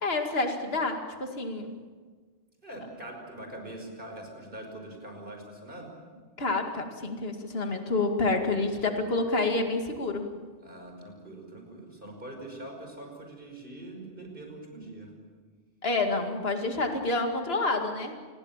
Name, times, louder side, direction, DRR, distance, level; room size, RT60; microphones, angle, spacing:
voice 1, 0.0-1.8 6.4-10.3 15.8-18.1, left 3 dB, 60° left, 4 dB, 2.5 m, -28 dB
voice 2, 2.6-5.9 10.6-15.1, right 1 dB, 50° right, 2 dB, 5.8 m, -43 dB
28.0 x 21.0 x 7.4 m, 1.5 s
omnidirectional pair, 1.2 m